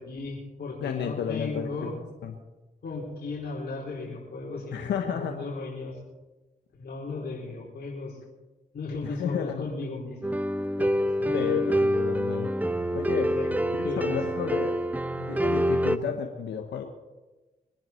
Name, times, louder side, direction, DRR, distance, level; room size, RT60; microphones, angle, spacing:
voice 1, 0.0-1.9 2.8-6.0 6.7-8.2 8.7-10.3 10.8-10.9 11.2-11.4 13.4-14.3, left 3 dB, 65° left, -5 dB, 4.5 m, -36 dB
voice 2, 0.8-1.9 2.2-2.4 4.7-5.4 9.0-9.6 11.3-12.5 12.9-13.3 13.7-14.8 15.1-16.8, left 8 dB, 90° left, 4 dB, 1.3 m, -32 dB
sound 1, 10.2-16.0, equal, 10° right, 0.9 m, -26 dB
23.5 x 10.5 x 4.6 m, 1.1 s
supercardioid pair, 50°, 18 cm